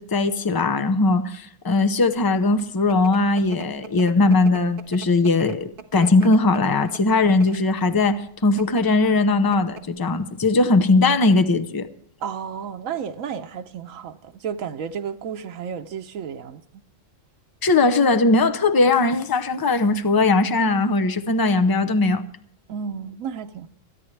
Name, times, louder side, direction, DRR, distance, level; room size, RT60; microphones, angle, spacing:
voice 1, 0.0-11.9 17.6-22.2, left 3 dB, 20° left, 0.6 m, -19 dB
sound 1, 2.3-7.7 8.4-8.8 9.2-9.3 9.5-10.0, right 6 dB, 45° right, 1.4 m, -41 dB
voice 2, 12.2-16.6 22.7-23.7, right 7 dB, 90° right, 1.2 m, -32 dB
27.5 x 10.0 x 3.3 m
omnidirectional pair, 1.3 m